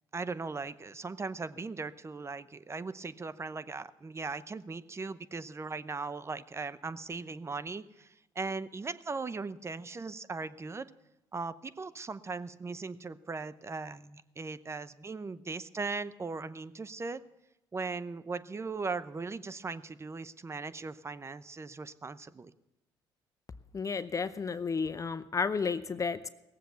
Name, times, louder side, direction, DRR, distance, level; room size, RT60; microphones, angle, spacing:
voice 1, 0.1-10.9 11.3-17.2 17.7-22.5, right 4 dB, 25° right, 14 dB, 0.7 m, -38 dB
voice 2, 23.7-26.3, left 5 dB, 30° left, 13 dB, 0.7 m, -32 dB
18.0 x 7.7 x 6.9 m, 0.96 s
supercardioid pair, 65°, 10 cm